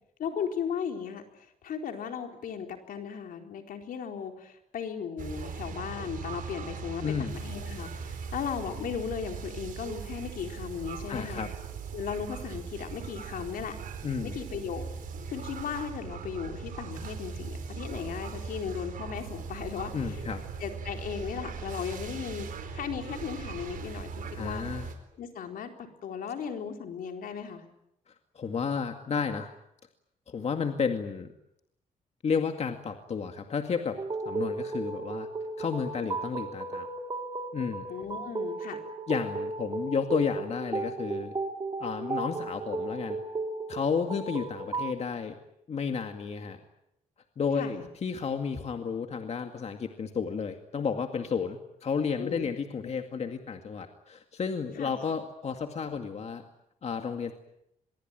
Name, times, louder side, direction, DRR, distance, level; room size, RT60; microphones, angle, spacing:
voice 1, 0.2-11.5 11.9-13.8 14.2-14.8 15.3-20.2 20.6-22.5 22.7-24.6 25.2-27.6 37.9-38.8 47.5-47.9 52.2-52.5 52.8-52.9 54.8-54.9, left 7 dB, 80° left, 4 dB, 4.1 m, -36 dB
sound 1, 5.2-24.9, right 5 dB, 75° right, 4.2 m, -39 dB
voice 2, 7.0-7.3 11.1-11.5 14.0-14.4 19.9-20.4 24.4-24.9 28.4-29.5 30.3-31.3 32.2-34.0 34.3-35.3 35.6-36.9 37.5-37.9 39.1-41.3 41.8-43.2 43.7-45.4 45.7-46.6 47.4-56.4 56.8-57.4, left 6 dB, 50° left, 5 dB, 2.2 m, -32 dB
sound 2, 33.9-44.9, right 3 dB, 30° right, 3.8 m, -35 dB
25.5 x 22.5 x 9.0 m, 0.80 s
cardioid pair, 105°, 14 cm